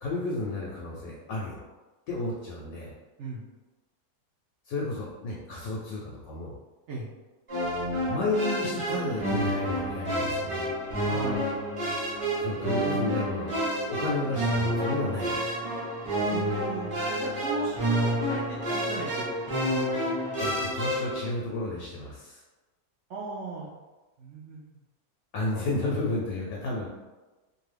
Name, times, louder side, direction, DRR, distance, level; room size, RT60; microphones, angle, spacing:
voice 1, 0.0-1.6 2.1-2.9 4.7-6.5 8.1-10.7 12.4-15.7 20.4-22.4 25.3-26.9, left 2 dB, 70° left, -3 dB, 0.9 m, -32 dB
sound 1, 7.5-21.2, equal, 25° right, 0.8 m, -29 dB
voice 2, 11.1-11.5 16.3-19.5 23.1-23.7 24.2-24.7, right 2 dB, 75° right, -5 dB, 0.6 m, -36 dB
2.6 x 2.5 x 3.2 m, 1.2 s
omnidirectional pair, 1.8 m